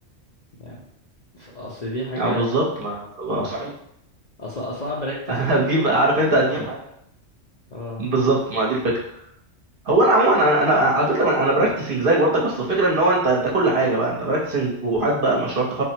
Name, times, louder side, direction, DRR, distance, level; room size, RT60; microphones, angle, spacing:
voice 1, 1.3-2.5 4.4-5.6 7.7-8.0, left 1 dB, 45° left, -5 dB, 0.6 m, -31 dB
voice 2, 2.2-3.7 5.3-6.8 8.0-9.0 9.9-15.8, right 2 dB, 50° right, -3 dB, 0.8 m, -20 dB
3.8 x 2.0 x 4.3 m, 0.72 s
omnidirectional pair, 1.3 m